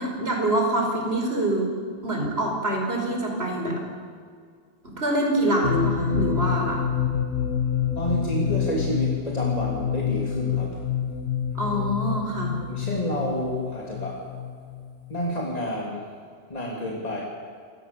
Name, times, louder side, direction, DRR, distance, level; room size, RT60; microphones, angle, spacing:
voice 1, 0.0-1.7 2.0-3.8 4.8-6.8 11.5-12.6, right 1 dB, 50° right, 1 dB, 5.2 m, -25 dB
sound 1, 5.6-15.3, left 9 dB, 75° left, 1.7 m, -28 dB
voice 2, 8.0-10.8 12.7-14.3 15.1-16.0 16.5-17.2, equal, 30° left, -3 dB, 3.3 m, -29 dB
28.0 x 19.0 x 7.1 m, 2.1 s
omnidirectional pair, 1.3 m